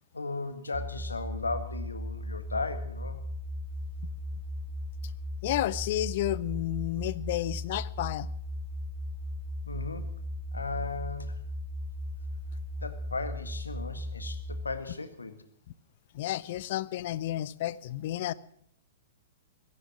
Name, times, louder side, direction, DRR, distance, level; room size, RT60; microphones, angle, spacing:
voice 1, 0.1-3.2 9.7-10.1 10.5-11.4 12.8-15.4, left 3 dB, 80° left, 1.7 m, -36 dB
sound 1, 0.7-14.7, left 1 dB, 5° right, 1.9 m, -37 dB
voice 2, 5.4-8.3 16.1-18.3, left 14 dB, 45° left, 0.6 m, -31 dB
16.5 x 14.0 x 6.0 m
figure-of-eight pair, 110°, 0 cm